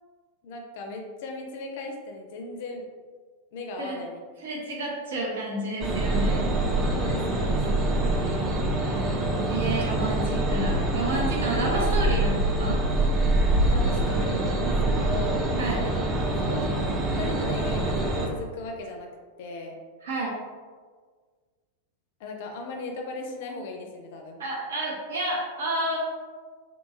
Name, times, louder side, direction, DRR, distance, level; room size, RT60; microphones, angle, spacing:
voice 1, 0.4-2.8 3.5-4.2 6.9-7.6 13.6-15.4 15.8-16.6 17.2-19.1 19.4-19.8 22.2-24.4, left 3 dB, 50° left, 2 dB, 0.4 m, -37 dB
voice 2, 4.4-6.4 9.5-12.8 15.6-15.9 20.0-20.4 24.4-26.0, right 1 dB, 65° right, -3 dB, 0.7 m, -30 dB
sound 1, 5.8-18.3, right 2 dB, 25° right, 0.4 m, -25 dB
2.7 x 2.3 x 2.6 m, 1.5 s
figure-of-eight pair, 90°, 0 cm